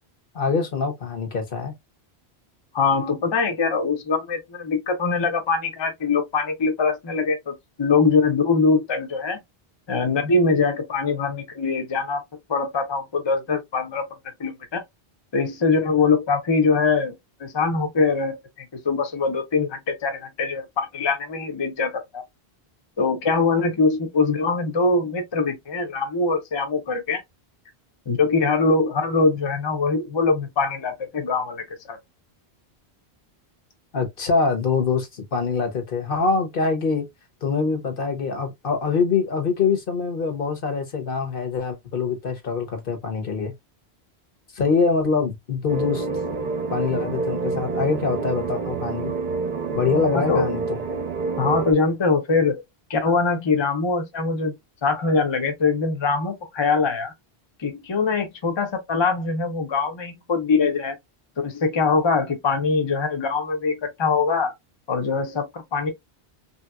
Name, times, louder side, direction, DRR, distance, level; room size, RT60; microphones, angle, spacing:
voice 1, 0.3-1.7 33.9-37.0 37.4-43.5 44.5-46.0 46.7-49.1 49.7-50.8, left 5 dB, 60° left, 1.0 m, -24 dB
voice 2, 2.7-9.4 9.9-12.2 12.5-14.1 14.4-14.8 15.3-17.1 17.4-22.2 23.0-27.2 28.1-32.0 50.1-50.5 51.4-52.6 52.9-54.5 54.8-57.1 57.6-61.0 61.4-64.5 64.9-65.9, left 4 dB, 30° left, 0.6 m, -23 dB
sound 1, 45.7-51.7, right 4 dB, 55° right, 0.8 m, -27 dB
3.3 x 2.8 x 2.2 m
omnidirectional pair, 1.1 m